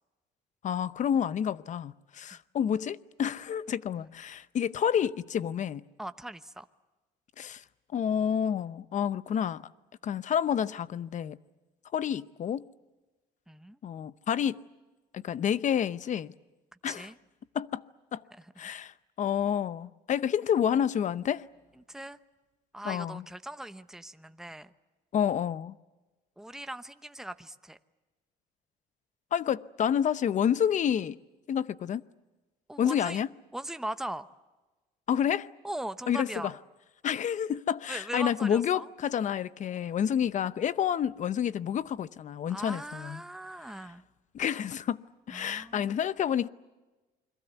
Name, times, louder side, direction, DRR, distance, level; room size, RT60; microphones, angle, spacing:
voice 1, 0.6-5.8 7.4-7.6 7.9-9.6 10.0-11.4 11.9-12.6 13.8-14.6 15.1-16.3 16.8-17.1 17.5-17.8 18.1-18.2 18.6-21.5 22.8-23.2 25.1-25.7 29.3-31.2 31.5-32.0 32.8-33.3 35.1-35.5 36.1-36.5 37.0-43.2 44.3-45.0 45.3-46.5, left 9 dB, 45° left, 0.8 m, -29 dB
voice 2, 6.0-6.7 13.5-13.8 16.9-17.2 18.4-18.5 21.9-22.2 22.7-24.7 26.4-27.8 32.7-33.2 33.5-34.3 35.6-36.5 37.9-38.9 42.5-44.0 45.3-46.0, right 1 dB, 5° right, 0.9 m, -39 dB
29.0 x 22.0 x 8.2 m
cardioid pair, 110°, 17 cm